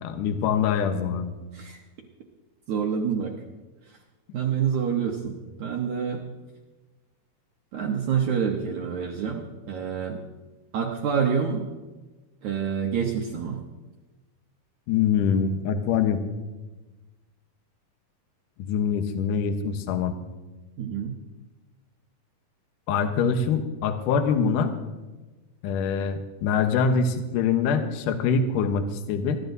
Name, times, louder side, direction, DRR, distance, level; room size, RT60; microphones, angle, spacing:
voice 1, 0.0-1.3 14.9-16.2 18.6-20.2 22.9-24.7 25.6-29.4, left 6 dB, 70° left, 7 dB, 2.2 m, -24 dB
voice 2, 2.7-3.4 4.3-5.3 5.6-6.2 7.7-10.2 10.7-11.7 12.4-13.6 20.8-21.2, right 7 dB, 70° right, 1 dB, 1.9 m, -27 dB
25.5 x 12.0 x 2.7 m, 1.2 s
omnidirectional pair, 4.5 m